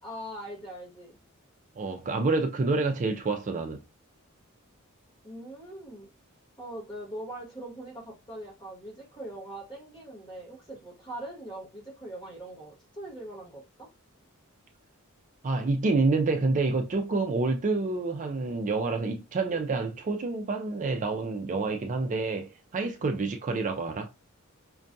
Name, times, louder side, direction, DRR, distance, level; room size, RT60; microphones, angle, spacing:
voice 1, 0.0-1.2 5.2-6.1 6.6-13.9, right 1 dB, 20° left, 1.5 m, -41 dB
voice 2, 1.8-3.8 15.4-24.1, right 3 dB, 35° right, 0.4 m, -28 dB
5.2 x 2.3 x 2.6 m
head